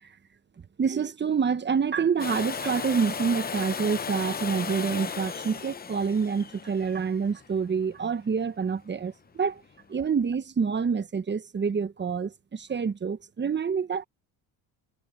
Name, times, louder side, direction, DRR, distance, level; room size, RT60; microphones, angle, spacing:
voice 1, 0.8-9.6 9.9-14.0, right 6 dB, 25° right, 1.1 m, -27 dB
Domestic sounds home sounds, 2.2-8.0 9.9-10.0, left 6 dB, 25° left, 0.8 m, -35 dB
cardioid pair, 95°, 41 cm